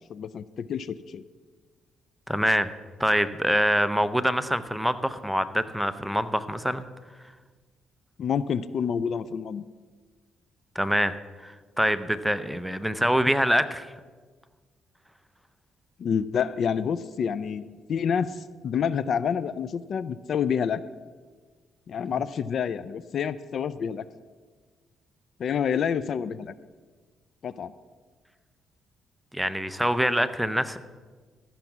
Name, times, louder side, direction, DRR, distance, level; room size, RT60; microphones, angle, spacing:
voice 1, 0.1-1.2 8.2-9.6 16.0-17.6 17.9-20.8 21.9-24.0 25.4-26.5 27.4-27.7, left 7 dB, 60° left, 16 dB, 0.4 m, -28 dB
voice 2, 2.3-2.7 3.0-6.8 10.8-11.1 11.4-13.9 29.3-30.8, equal, ahead, 11 dB, 0.6 m, -25 dB
14.5 x 5.9 x 7.3 m, 1.4 s
cardioid pair, 90°, 0 cm